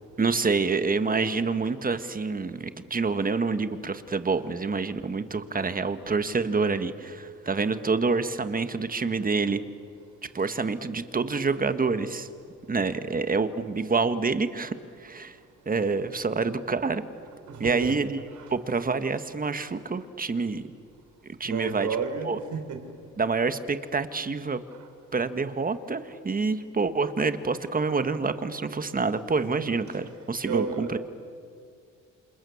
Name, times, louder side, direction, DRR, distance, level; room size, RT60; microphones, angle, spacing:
voice 1, 0.2-9.6 10.3-12.3 12.7-15.4 15.6-17.0 17.6-18.2 18.5-20.7 21.2-21.9 22.2-22.4 23.2-24.6 25.1-31.0, right 4 dB, 30° right, 11 dB, 1.5 m, -27 dB
voice 2, 17.5-17.9 18.3-18.5 21.4-22.8 29.5-29.8 30.4-31.0, right 6 dB, 70° right, 6 dB, 4.2 m, -32 dB
28.5 x 27.5 x 7.2 m, 2.3 s
cardioid pair, 90°, 30 cm